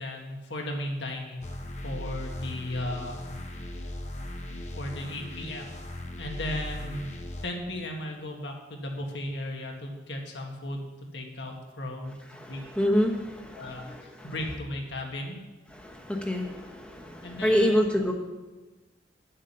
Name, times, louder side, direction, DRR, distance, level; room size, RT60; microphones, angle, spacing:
voice 1, 0.0-1.4 1.8-3.8 4.8-5.7 6.2-7.1 7.4-12.2 12.5-12.6 13.5-15.4 17.2-18.1, left 1 dB, 80° left, 1 dB, 1.7 m, -36 dB
sound 1, 1.4-7.5, left 1 dB, 40° left, 0.9 m, -38 dB
voice 2, 12.3-14.3 15.7-18.1, equal, 5° left, 0 dB, 1.0 m, -27 dB
10.0 x 7.7 x 5.6 m, 1.2 s
head